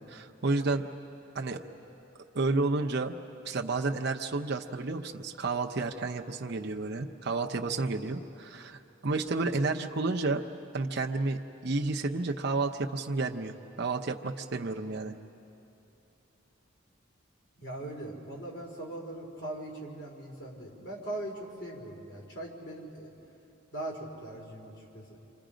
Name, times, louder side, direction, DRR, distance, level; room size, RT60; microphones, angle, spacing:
voice 1, 0.1-0.9 1.3-1.6 2.3-3.2 3.4-10.4 10.7-15.1, right 3 dB, 55° right, 2 dB, 0.8 m, -31 dB
voice 2, 17.6-23.1 23.7-25.0, right 1 dB, 65° left, -2 dB, 4.2 m, -40 dB
29.0 x 25.0 x 5.1 m, 2.9 s
head